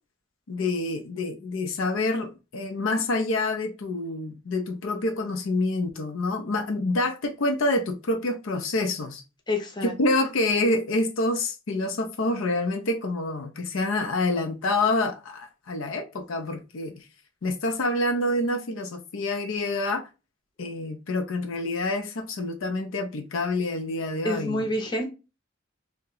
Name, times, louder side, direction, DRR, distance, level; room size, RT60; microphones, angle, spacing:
voice 1, 0.5-9.2 9.8-17.1 17.4-20.1 20.6-24.6, left 2 dB, 70° left, 0.5 m, -27 dB
voice 2, 9.5-9.9 24.2-25.1, left 1 dB, 20° left, 0.7 m, -27 dB
2.7 x 2.1 x 3.7 m
head